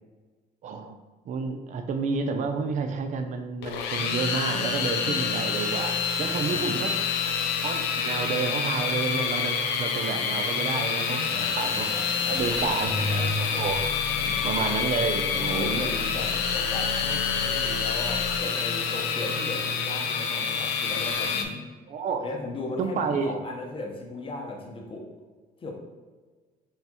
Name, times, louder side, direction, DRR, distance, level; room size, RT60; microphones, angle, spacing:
voice 1, 0.6-1.0 1.3-6.9 7.6-11.2 11.6-13.9 14.4-15.9 21.9-22.2 22.8-23.3, right 5 dB, 45° right, 6 dB, 0.4 m, -30 dB
sound 1, 3.6-21.4, left 6 dB, 85° left, 0.5 m, -27 dB
voice 2, 6.5-6.9 11.3-13.3 14.1-14.4 15.3-21.6 22.2-25.1 25.6-25.7, left 2 dB, 30° left, 1 dB, 0.9 m, -37 dB
sound 2, 7.8-13.4, right 4 dB, 70° right, 0.8 m, -49 dB
sound 3, 12.4-18.4, left 3 dB, 50° left, 1.3 m, -35 dB
4.5 x 3.4 x 2.8 m, 1.3 s
cardioid pair, 110°, 17 cm